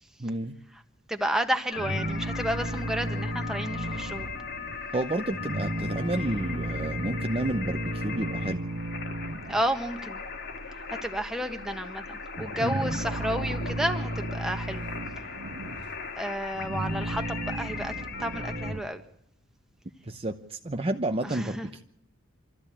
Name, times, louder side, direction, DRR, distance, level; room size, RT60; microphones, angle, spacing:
voice 1, 0.2-0.5 4.9-8.6 12.6-13.0 20.0-21.8, right 1 dB, 30° right, 6 dB, 0.9 m, -31 dB
voice 2, 1.1-4.3 9.5-10.2 11.0-14.8 16.2-17.9 18.2-19.0 21.3-21.7, equal, 5° right, 5 dB, 1.5 m, -31 dB
sound 1, 1.7-18.7, left 5 dB, 55° left, 2.1 m, -39 dB
sound 2, 1.8-4.9 5.3-9.9 10.2-11.3 11.5-11.7 12.0-16.1 16.5-18.8, right 1 dB, 60° right, 1.5 m, -34 dB
25.5 x 14.0 x 8.6 m, 0.74 s
head